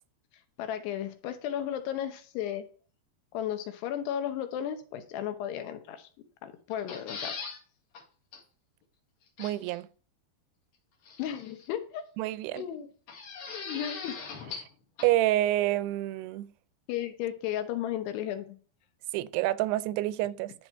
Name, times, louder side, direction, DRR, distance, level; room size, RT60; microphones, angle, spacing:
voice 1, 0.6-2.6 3.3-6.1 6.4-7.6 11.2-12.0 12.6-12.9 13.5-14.2 16.9-18.6, left 10 dB, 90° left, 3.1 m, -34 dB
sound 1, 6.7-7.6 7.9-8.0 8.3-8.4 9.4-9.8 11.1-11.7 13.1-14.7 15.0-15.1, left 5 dB, 60° left, 3.1 m, -40 dB
voice 2, 9.4-9.9 12.2-12.6 15.0-16.5 19.1-20.5, right 15 dB, 90° right, 2.6 m, -28 dB
11.5 x 4.5 x 4.5 m
omnidirectional pair, 4.6 m